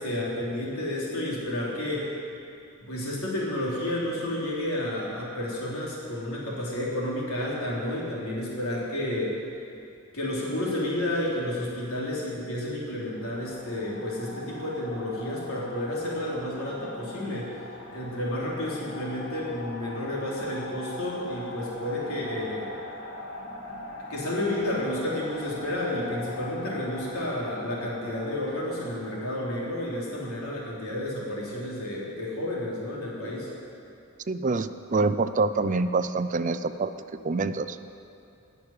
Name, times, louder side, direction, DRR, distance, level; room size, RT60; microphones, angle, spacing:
voice 1, 0.0-2.1 2.8-9.3 10.1-17.5 17.9-22.7 24.1-33.5, left 1 dB, 80° left, -5 dB, 3.5 m, -31 dB
sound 1, 13.0-30.8, left 2 dB, 50° left, 2.1 m, -42 dB
voice 2, 34.3-36.9 37.2-37.8, right 3 dB, 35° right, 12 dB, 0.4 m, -26 dB
15.5 x 6.2 x 9.8 m, 2.6 s
head